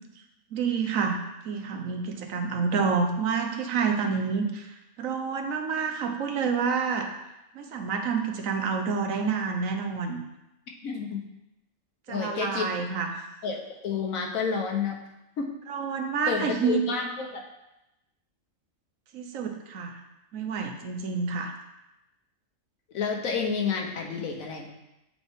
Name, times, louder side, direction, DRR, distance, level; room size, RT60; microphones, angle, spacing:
voice 1, 0.5-1.2 1.4-4.7 5.0-7.1 7.5-10.2 12.1-13.3 15.7-16.8 19.1-20.0 20.3-21.5, right 5 dB, 80° right, 4 dB, 1.2 m, -28 dB
voice 2, 10.8-11.2 12.1-12.7 13.4-15.0 15.4-15.5 16.3-17.4 22.9-24.7, left 5 dB, 90° left, 2 dB, 1.3 m, -30 dB
8.5 x 4.1 x 3.5 m, 0.93 s
omnidirectional pair, 1.4 m